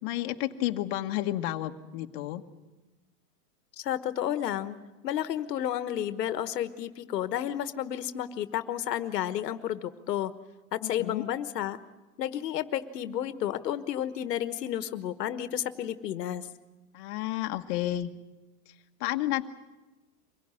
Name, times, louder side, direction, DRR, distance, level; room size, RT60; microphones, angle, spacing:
voice 1, 0.0-2.4 10.8-11.2 16.9-18.1 19.0-19.5, left 14 dB, 40° left, 5 dB, 1.4 m, -31 dB
voice 2, 3.8-4.8 5.0-10.3 10.7-11.8 12.2-16.5, left 11 dB, 90° left, 12 dB, 1.4 m, -31 dB
24.5 x 16.5 x 9.8 m, 1.1 s
supercardioid pair, 150°, 47 cm